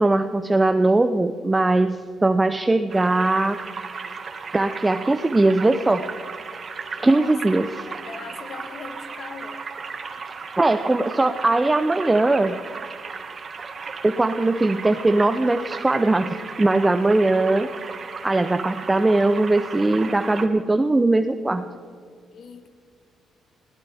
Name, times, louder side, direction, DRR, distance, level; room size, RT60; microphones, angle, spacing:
voice 1, 0.0-3.6 4.0-4.2 4.5-6.0 6.9-7.9 10.6-12.6 14.0-17.7 18.2-21.7, right 2 dB, 15° right, 8 dB, 0.7 m, -20 dB
sound 1, 2.9-20.5, right 5 dB, 45° right, 1.8 m, -35 dB
voice 2, 7.0-7.4 7.9-9.6 22.3-22.7, left 5 dB, 60° left, 8 dB, 1.5 m, -40 dB
20.5 x 17.5 x 3.5 m, 2.2 s
cardioid pair, 90°, 0 cm